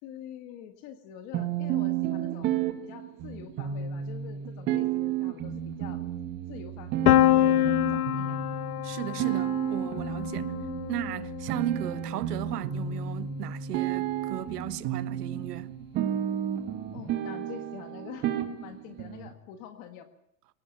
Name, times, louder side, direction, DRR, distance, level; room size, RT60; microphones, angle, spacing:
voice 1, 0.0-2.5 2.8-6.0 6.5-6.9 7.2-8.4 16.9-20.1, left 9 dB, 30° left, 1.7 m, -45 dB
sound 1, 1.3-19.3, right 10 dB, 25° right, 1.7 m, -32 dB
Piano, 7.1-12.8, left 15 dB, 75° left, 1.1 m, -27 dB
voice 2, 8.8-10.5 10.9-15.7, right 13 dB, 90° right, 1.4 m, -36 dB
23.5 x 18.5 x 7.2 m
supercardioid pair, 175°, 46 cm